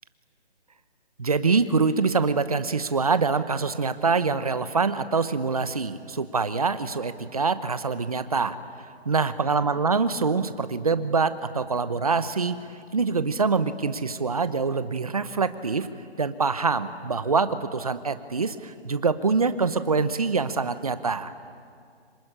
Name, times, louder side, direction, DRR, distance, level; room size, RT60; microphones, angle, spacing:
voice 1, 1.2-8.6 9.0-12.6 12.9-15.9 16.2-21.3, right 4 dB, 35° right, 12 dB, 0.9 m, -25 dB
25.5 x 23.5 x 9.9 m, 2.2 s
hypercardioid pair, 175°, 33 cm